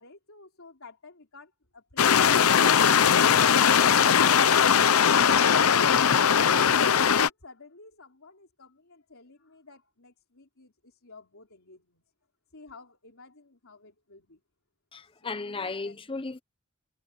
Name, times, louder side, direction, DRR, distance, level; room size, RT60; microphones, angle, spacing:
voice 1, 0.0-4.6 5.0-12.0 12.5-14.4 15.0-16.1, left 3 dB, 70° left, 4.0 m, -52 dB
sound 1, 2.0-7.3, left 7 dB, 90° left, 0.7 m, -20 dB
voice 2, 14.9-16.4, left 3 dB, 25° left, 0.9 m, -35 dB
head